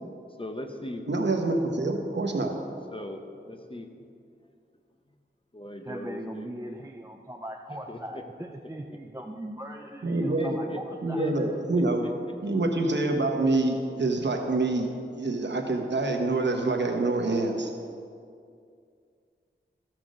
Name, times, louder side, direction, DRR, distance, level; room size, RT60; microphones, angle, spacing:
voice 1, 0.4-1.4 2.9-4.1 5.5-6.5 7.9-8.2 10.4-10.8 11.1-11.3 12.0-12.1 12.9-13.2, left 1 dB, 25° left, 5 dB, 0.8 m, -39 dB
voice 2, 1.1-2.6 10.0-10.6 11.0-12.1 12.4-17.7, right 2 dB, 60° right, 3 dB, 1.1 m, -26 dB
voice 3, 5.8-11.5, right 1 dB, 15° right, 2 dB, 0.5 m, -40 dB
14.0 x 6.1 x 5.1 m, 2.4 s
wide cardioid pair, 75°, 20 cm